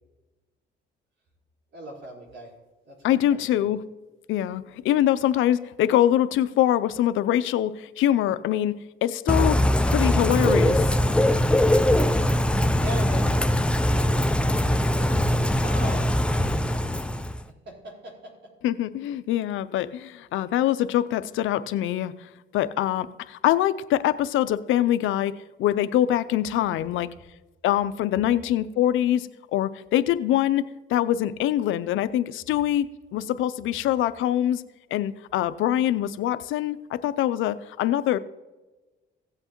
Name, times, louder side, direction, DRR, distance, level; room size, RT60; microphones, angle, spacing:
voice 1, 1.7-2.5 2.8-3.0 3.3-3.7 12.4-14.2 14.6-16.7 17.7-18.5, right 1 dB, 65° right, -2 dB, 4.1 m, -41 dB
voice 2, 3.0-3.8 4.3-11.0 18.6-25.3 25.6-27.1 27.6-34.6 34.9-38.2, left 12 dB, 80° left, 14 dB, 0.5 m, -24 dB
Bird / Rain, 9.3-17.4, left 1 dB, 5° left, 0.5 m, -21 dB
16.5 x 7.8 x 3.0 m, 1.2 s
cardioid pair, 90°, 20 cm